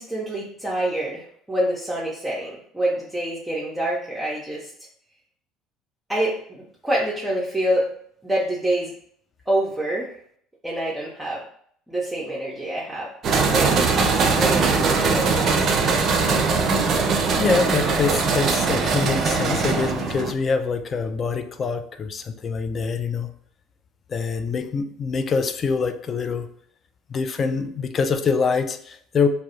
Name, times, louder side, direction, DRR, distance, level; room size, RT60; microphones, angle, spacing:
voice 1, 0.0-4.7 6.1-7.9 8.2-8.9 9.5-10.1 10.6-11.4 11.9-13.1 13.5-13.8 14.4-15.6 16.2-16.4, right 1 dB, 5° right, -5 dB, 0.6 m, -26 dB
sound 1, 13.2-20.3, right 4 dB, 50° right, 0.4 m, -21 dB
voice 2, 17.3-23.3 24.1-26.5 27.1-29.3, left 5 dB, 40° left, 9 dB, 0.3 m, -25 dB
2.2 x 2.1 x 2.9 m, 0.62 s
hypercardioid pair, 70°, 0 cm